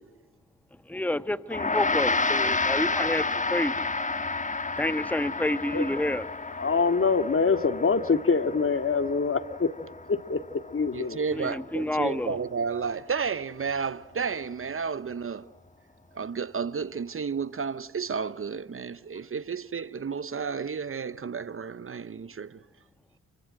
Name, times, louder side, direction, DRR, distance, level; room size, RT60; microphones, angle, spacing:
voice 1, 0.9-3.9 4.8-6.3 11.3-12.4, left 1 dB, 5° left, 1.3 m, -29 dB
Gong, 1.5-11.0, left 3 dB, 20° left, 1.9 m, -30 dB
voice 2, 6.6-9.7 10.1-10.4 10.7-11.2, left 4 dB, 40° left, 2.2 m, -24 dB
voice 3, 10.9-15.5 16.1-22.6, right 6 dB, 40° right, 1.0 m, -32 dB
30.0 x 24.0 x 7.7 m
hypercardioid pair, 45°, 34 cm